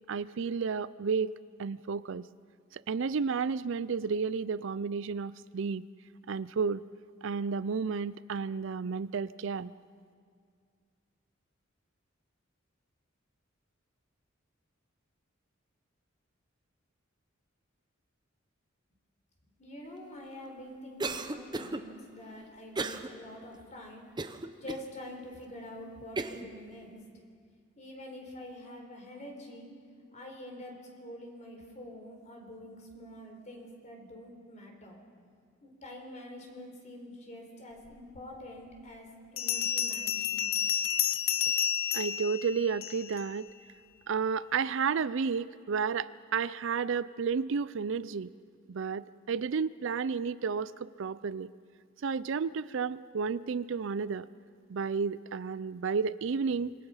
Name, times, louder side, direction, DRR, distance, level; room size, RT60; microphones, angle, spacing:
voice 1, 0.1-1.3 1.6-2.3 2.7-5.8 6.3-6.8 7.2-9.7 41.9-43.5 44.1-48.3 48.7-51.5 52.0-54.3 54.7-56.7, right 5 dB, 65° right, 17 dB, 0.5 m, -32 dB
voice 2, 19.6-24.0 24.6-26.9 27.8-29.7 30.1-35.0 35.6-40.5, left 1 dB, 35° left, 2 dB, 4.2 m, -46 dB
Cough, 21.0-21.8 22.7-23.1 23.5-23.6 24.2-24.8 25.4-25.5 26.2-26.5, right 3 dB, 20° right, 0.8 m, -34 dB
Bell, 38.1-38.2 39.4-43.2, left 9 dB, 90° left, 0.9 m, -30 dB
26.5 x 21.5 x 5.7 m, 2.2 s
head